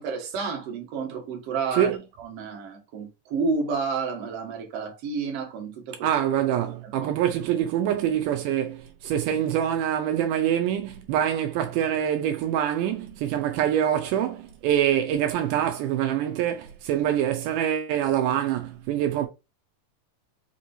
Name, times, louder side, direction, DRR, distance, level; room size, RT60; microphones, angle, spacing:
voice 1, 0.0-6.1 6.6-7.1, right 4 dB, 60° right, 1.9 m, -31 dB
voice 2, 6.0-19.3, right 10 dB, 85° right, 2.1 m, -25 dB
5.2 x 2.9 x 2.5 m
omnidirectional pair, 3.7 m